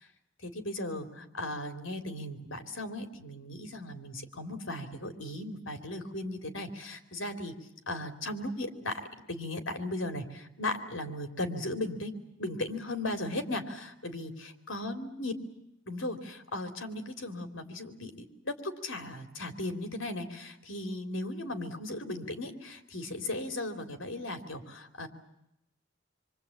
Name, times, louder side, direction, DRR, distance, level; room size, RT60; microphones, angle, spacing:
voice 1, 0.4-7.5 7.9-9.0 9.3-12.1 12.4-15.3 15.9-25.1, left 1 dB, 70° left, 6 dB, 3.4 m, -37 dB
26.5 x 24.5 x 8.7 m, 0.82 s
head